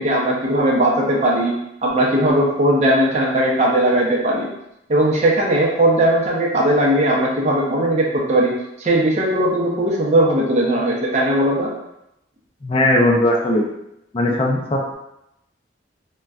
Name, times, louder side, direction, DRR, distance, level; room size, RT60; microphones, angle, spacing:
voice 1, 0.0-4.5 4.9-11.7, right 1 dB, 35° right, -2 dB, 0.5 m, -18 dB
voice 2, 12.6-13.7 14.1-14.9, left 1 dB, 30° left, -1 dB, 0.3 m, -18 dB
3.6 x 2.2 x 2.3 m, 0.84 s
head